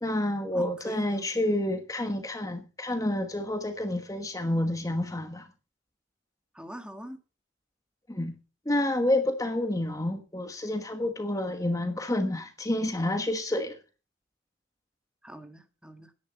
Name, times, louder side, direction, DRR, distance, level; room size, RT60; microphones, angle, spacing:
voice 1, 0.0-5.5 8.1-8.3 8.6-13.8, left 1 dB, 20° left, 1.3 m, -29 dB
voice 2, 0.5-1.7 6.5-7.2 15.2-16.1, equal, 5° right, 1.6 m, -43 dB
16.5 x 10.5 x 4.2 m
head